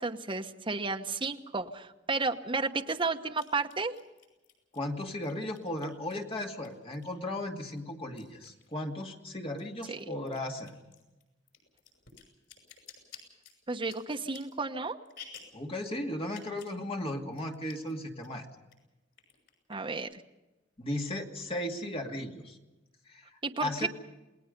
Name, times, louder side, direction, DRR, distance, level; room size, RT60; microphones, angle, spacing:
voice 1, 0.0-3.9 9.9-10.0 13.7-15.0 19.7-20.2 23.4-23.9, right 3 dB, 30° right, 5 dB, 1.1 m, -32 dB
sound 1, 1.6-1.7 3.3-7.3 7.7-9.2 9.5-15.6 16.2-16.8 17.1-17.2 17.3-17.9 18.2-18.8 19.1-20.0, left 7 dB, 90° left, 6.2 m, -53 dB
voice 2, 4.7-10.8 15.5-18.5 20.8-22.6 23.1-23.3 23.6-23.9, left 1 dB, 30° left, 2 dB, 2.3 m, -36 dB
28.5 x 19.0 x 5.3 m, 1.0 s
head